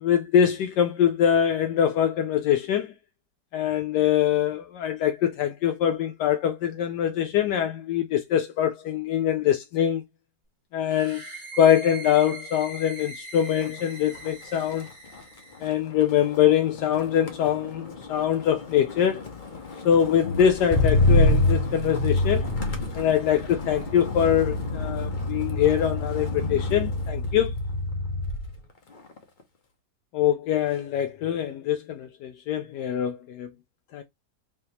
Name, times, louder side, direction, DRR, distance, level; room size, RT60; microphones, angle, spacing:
voice 1, 0.0-2.9 3.5-10.0 10.7-11.2 11.6-14.9 15.6-19.2 19.8-22.5 22.9-27.5 30.1-33.5 33.9-34.0, left 9 dB, 80° left, 1.2 m, -23 dB
sound 1, 10.8-15.7, right 2 dB, 30° right, 1.4 m, -41 dB
Motor vehicle (road), 13.5-13.8 14.1-28.6 29.0-29.4, left 2 dB, 40° left, 0.8 m, -27 dB
4.1 x 3.5 x 2.8 m
omnidirectional pair, 1.8 m